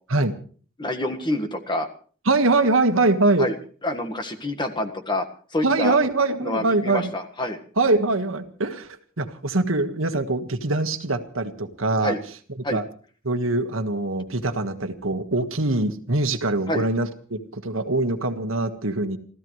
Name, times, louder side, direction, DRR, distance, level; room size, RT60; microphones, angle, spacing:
voice 1, 0.8-1.9 3.4-3.5 3.8-5.3 5.5-6.0 6.4-7.6 12.0-12.2 12.6-12.8 16.7-16.9, left 1 dB, 20° left, 6 dB, 1.6 m, -27 dB
voice 2, 2.2-3.5 5.6-7.1 7.8-8.9 9.2-12.1 12.7-12.8 13.2-19.2, right 2 dB, 75° right, 8 dB, 1.6 m, -23 dB
30.0 x 14.0 x 3.2 m, 0.43 s
head